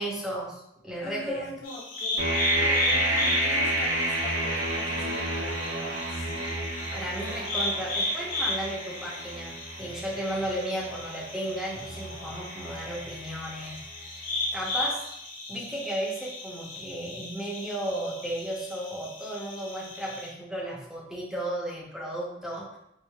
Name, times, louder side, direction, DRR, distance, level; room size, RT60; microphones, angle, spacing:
voice 1, 0.0-1.5 6.9-14.1 14.5-15.0 15.5-22.8, right 1 dB, ahead, -5 dB, 0.6 m, -34 dB
voice 2, 1.0-2.3 2.6-6.8, left 1 dB, 50° left, -4 dB, 0.7 m, -42 dB
sound 1, 1.6-20.3, left 2 dB, 80° left, 1.0 m, -36 dB
sound 2, 2.2-14.0, right 1 dB, 85° right, 1.0 m, -30 dB
4.7 x 2.4 x 2.3 m, 0.78 s
head